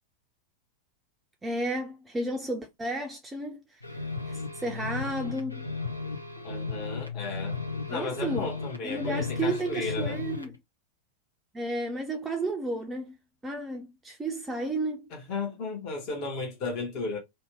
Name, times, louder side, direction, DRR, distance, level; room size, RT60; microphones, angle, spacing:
voice 1, 1.4-3.8 4.3-5.7 7.9-8.5 8.8-10.5 11.5-13.2 13.4-15.1, right 2 dB, 10° right, 0.4 m, -32 dB
sound 1, 3.8-10.5, left 4 dB, 85° left, 0.6 m, -35 dB
voice 2, 6.4-7.6 7.9-10.2 15.1-17.2, left 3 dB, 40° left, 0.9 m, -34 dB
2.6 x 2.1 x 3.3 m
figure-of-eight pair, 90°, 0 cm